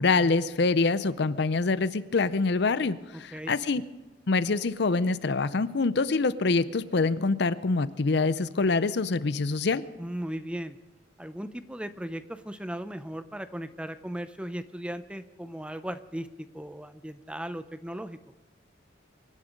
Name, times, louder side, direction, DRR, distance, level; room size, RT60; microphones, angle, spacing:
voice 1, 0.0-3.8 4.3-9.8, left 3 dB, 60° left, 15 dB, 0.6 m, -25 dB
voice 2, 3.1-3.5 10.0-10.8 11.2-18.2, right 1 dB, 5° right, 12 dB, 0.5 m, -37 dB
25.0 x 11.0 x 5.2 m, 1.1 s
head